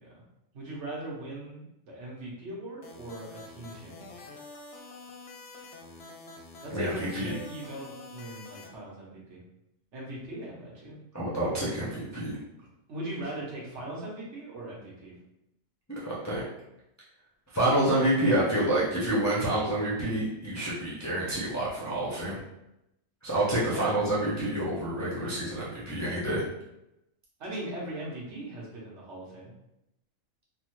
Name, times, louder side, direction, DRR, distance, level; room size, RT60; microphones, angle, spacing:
voice 1, 0.5-4.2 6.6-9.4 9.9-11.0 12.9-15.1 23.7-23.9 27.4-29.5, right 1 dB, 60° right, -4 dB, 1.1 m, -39 dB
sound 1, 2.8-8.7, left 3 dB, 65° left, 0.7 m, -47 dB
voice 2, 6.7-7.3 11.1-12.4 16.0-16.4 17.5-22.4 23.2-26.4, right 1 dB, 25° left, -9 dB, 0.4 m, -28 dB
3.4 x 2.1 x 3.0 m, 0.88 s
omnidirectional pair, 1.4 m